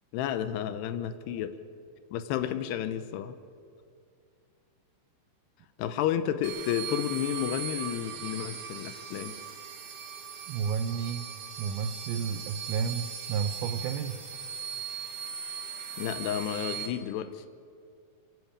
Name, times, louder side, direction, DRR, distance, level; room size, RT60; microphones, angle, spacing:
voice 1, 0.1-1.6 2.1-3.4 5.8-9.4 16.0-17.4, left 10 dB, 80° left, 11 dB, 2.7 m, -31 dB
sound 1, 6.4-16.9, right 7 dB, 55° right, 2.5 m, -39 dB
voice 2, 10.5-11.2 11.6-14.2, right 6 dB, 90° right, 9 dB, 2.0 m, -31 dB
27.0 x 11.0 x 8.7 m, 2.3 s
omnidirectional pair, 5.2 m